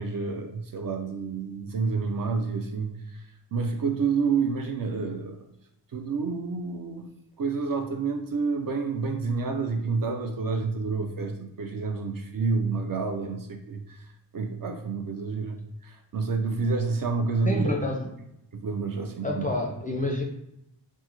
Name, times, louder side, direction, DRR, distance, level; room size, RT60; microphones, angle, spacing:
voice 1, 0.0-3.3 3.5-5.4 5.9-7.1 7.4-14.1 14.3-17.7 18.5-19.5, right 4 dB, 50° right, 5 dB, 0.5 m, -29 dB
voice 2, 17.5-18.1 19.2-20.2, left 2 dB, 20° left, 0 dB, 0.4 m, -28 dB
3.4 x 2.1 x 2.9 m, 0.83 s
wide cardioid pair, 90°, 44 cm